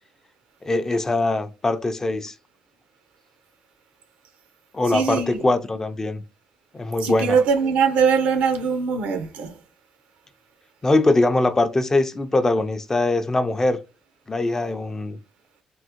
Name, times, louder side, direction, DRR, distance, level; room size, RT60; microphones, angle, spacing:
voice 1, 0.6-2.3 4.7-6.2 6.7-7.4 10.8-13.8 14.3-15.2, left 2 dB, 20° left, 0.4 m, -22 dB
voice 2, 4.9-5.4 7.0-9.5, right 6 dB, 80° right, 0.6 m, -21 dB
3.5 x 2.0 x 2.9 m
cardioid pair, 75°, 2 cm